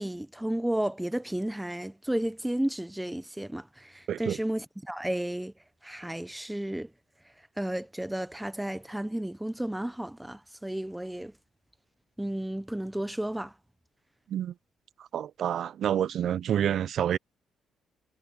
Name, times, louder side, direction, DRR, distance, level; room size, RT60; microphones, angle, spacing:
voice 1, 0.0-5.5 5.8-6.9 7.6-11.3 12.2-13.5, right 1 dB, 5° right, 0.9 m, -32 dB
voice 2, 15.0-17.2, right 10 dB, 65° right, 0.5 m, -28 dB
cardioid pair, 90°, 0 cm